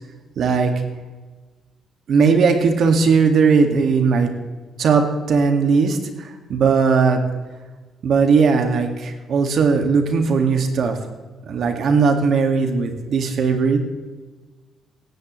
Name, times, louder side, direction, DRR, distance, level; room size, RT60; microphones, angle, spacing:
voice 1, 0.4-0.7 2.1-4.3 4.8-7.2 8.0-11.0 11.5-13.8, right 5 dB, 65° right, 5 dB, 1.9 m, -18 dB
17.0 x 14.0 x 3.2 m, 1.3 s
cardioid pair, 90°, 0 cm